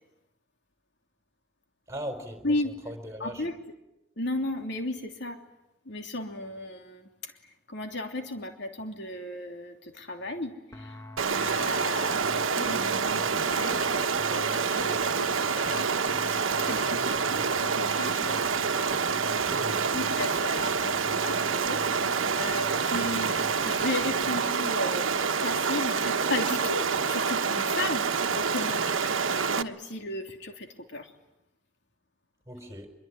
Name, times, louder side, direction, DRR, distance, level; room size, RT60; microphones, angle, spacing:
voice 1, 1.9-2.5 2.8-3.4 16.8-17.5 19.4-19.8 32.5-32.9, equal, 15° right, 6 dB, 4.4 m, -39 dB
voice 2, 2.4-2.7 3.2-3.6 4.2-5.4 5.8-7.3 7.7-15.9 16.6-17.0 17.6-18.4 18.8-19.3 19.9-25.1 25.4-31.1, left 2 dB, 60° left, 4 dB, 3.1 m, -35 dB
sound 1, 10.7-24.4, left 1 dB, 15° left, 1.7 m, -45 dB
Stream, 11.2-29.6, right 5 dB, 90° right, 1.2 m, -27 dB
25.5 x 23.0 x 9.9 m, 0.93 s
head